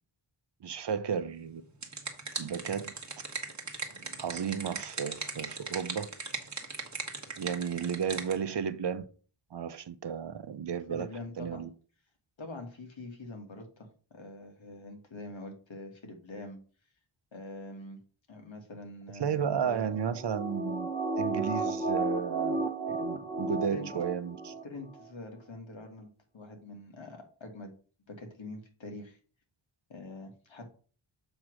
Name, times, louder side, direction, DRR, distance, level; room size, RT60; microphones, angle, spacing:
voice 1, 0.6-1.6 2.4-2.9 4.2-6.1 7.4-9.1 9.5-11.1 11.4-11.7 19.2-20.9 21.2-24.5, right 7 dB, 60° right, 0.7 m, -33 dB
sound 1, 1.5-8.4, right 4 dB, 35° right, 1.4 m, -39 dB
voice 2, 10.9-11.7 12.4-16.6 17.3-18.0 18.3-20.1 23.6-23.9 24.6-27.7 28.1-29.2 29.9-30.7, left 2 dB, 65° left, 1.8 m, -44 dB
sound 2, 19.9-24.6 25.0-25.1, right 3 dB, 10° left, 1.2 m, -33 dB
7.3 x 3.1 x 6.1 m
wide cardioid pair, 90°, 49 cm